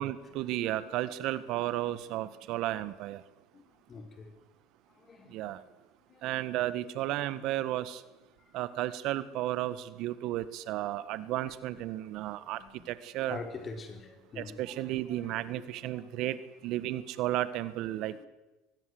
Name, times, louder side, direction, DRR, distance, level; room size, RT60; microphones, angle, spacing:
voice 1, 0.0-3.2 5.3-5.6 6.2-8.0 8.5-13.4 14.4-16.4 16.6-18.3, right 14 dB, 65° right, 1.5 m, -33 dB
voice 2, 3.9-4.3 5.1-5.3 6.1-6.2 12.6-12.9 13.3-15.2 15.6-15.7 15.9-16.0, left 4 dB, 35° left, 4.3 m, -44 dB
23.0 x 20.5 x 7.9 m
supercardioid pair, 100°, 0 cm